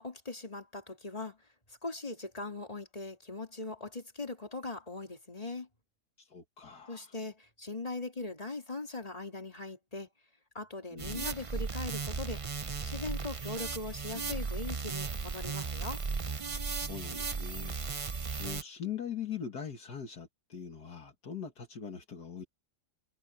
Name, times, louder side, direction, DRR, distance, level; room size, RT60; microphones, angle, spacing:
voice 1, 0.0-1.4 1.8-5.7 6.9-10.1 10.5-12.4 12.8-16.0, left 3 dB, 20° left, 3.7 m, -40 dB
voice 2, 6.2-7.1 10.9-11.3 16.7-22.4, left 7 dB, 70° left, 2.4 m, -42 dB
sound 1, 11.0-18.6, right 5 dB, 45° right, 0.4 m, -36 dB
omnidirectional pair, 1.8 m